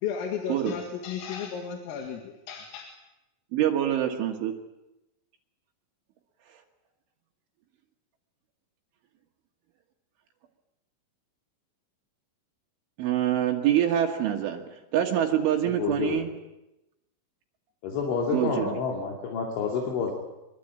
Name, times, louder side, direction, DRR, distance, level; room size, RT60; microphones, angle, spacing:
voice 1, 0.0-2.9, left 7 dB, 85° left, 3 dB, 4.7 m, -34 dB
voice 2, 3.5-4.5 13.0-14.6 14.9-16.3 18.3-18.7, right 10 dB, 75° right, 2 dB, 3.9 m, -25 dB
voice 3, 15.6-16.2 17.8-20.1, left 5 dB, 70° left, 0 dB, 5.0 m, -29 dB
24.0 x 23.0 x 8.9 m, 0.94 s
omnidirectional pair, 5.9 m